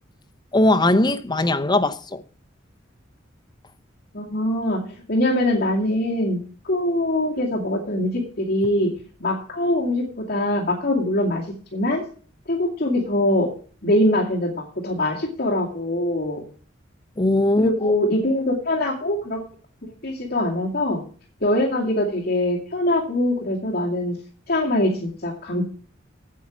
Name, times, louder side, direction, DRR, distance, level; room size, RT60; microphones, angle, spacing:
voice 1, 0.5-2.2 17.2-17.9, left 1 dB, 20° left, 0.7 m, -19 dB
voice 2, 4.1-6.4 6.6-8.9 9.2-11.5 11.7-12.0 12.5-13.5 13.8-16.4 17.6-19.4 20.0-21.0 21.4-24.2 24.5-25.6, left 1 dB, 50° left, 2.3 m, -23 dB
9.2 x 8.3 x 7.2 m
head